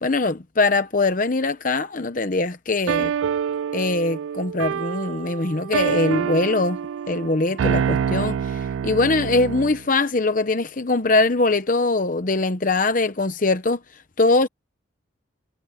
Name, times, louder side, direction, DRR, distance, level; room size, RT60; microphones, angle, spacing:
voice 1, 0.0-3.1 3.7-6.8 7.1-13.8 14.2-14.5, left 3 dB, 45° left, 0.9 m, -22 dB
sound 1, 2.9-9.8, right 8 dB, 85° right, 0.3 m, -26 dB
head